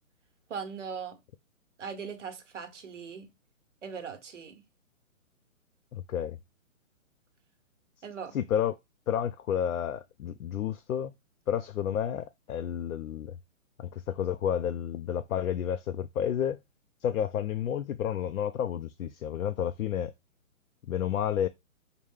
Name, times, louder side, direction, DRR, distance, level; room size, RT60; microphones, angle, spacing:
voice 1, 0.5-1.2 1.8-3.3 3.8-4.6 8.0-8.3, right 6 dB, 60° right, 1.0 m, -39 dB
voice 2, 5.9-6.4 8.3-8.8 9.1-11.1 11.5-13.4 13.8-16.6 17.0-20.1 20.9-21.5, left 9 dB, 90° left, 0.5 m, -30 dB
5.0 x 2.2 x 3.4 m
hypercardioid pair, 170°, 41 cm